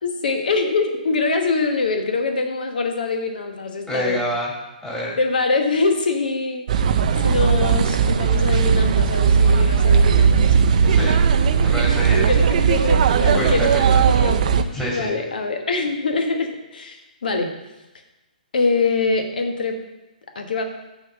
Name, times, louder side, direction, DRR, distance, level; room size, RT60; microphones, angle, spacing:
voice 1, 0.0-4.2 5.2-6.9 7.2-10.5 12.3-14.5 14.9-17.5 18.5-19.8 20.3-20.6, left 3 dB, 70° left, 5 dB, 1.1 m, -24 dB
voice 2, 3.9-4.5 4.8-5.2 10.9-11.2 11.6-12.3 13.3-13.8 14.7-15.1, equal, 10° left, -6 dB, 2.3 m, -26 dB
sound 1, 6.7-14.6, right 6 dB, 55° right, 0.5 m, -17 dB
6.4 x 4.3 x 6.3 m, 1.0 s
hypercardioid pair, 130°, 5 cm